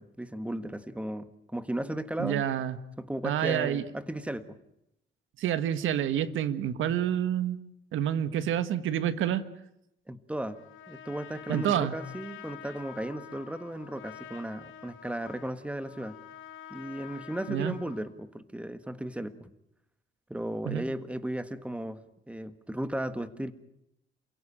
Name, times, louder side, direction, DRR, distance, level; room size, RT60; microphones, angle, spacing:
voice 1, 0.0-2.5 3.0-4.6 10.1-10.6 10.9-16.2 16.7-19.5 20.3-23.5, right 1 dB, 5° right, 11 dB, 1.8 m, -35 dB
voice 2, 2.2-2.8 3.2-3.8 5.4-7.6 7.9-9.4 11.5-11.9 17.5-17.7 20.7-20.8, right 10 dB, 80° right, 13 dB, 1.6 m, -28 dB
Trumpet, 10.5-18.1, left 9 dB, 80° left, 3.3 m, -48 dB
28.5 x 17.0 x 8.9 m, 0.82 s
cardioid pair, 90°, 20 cm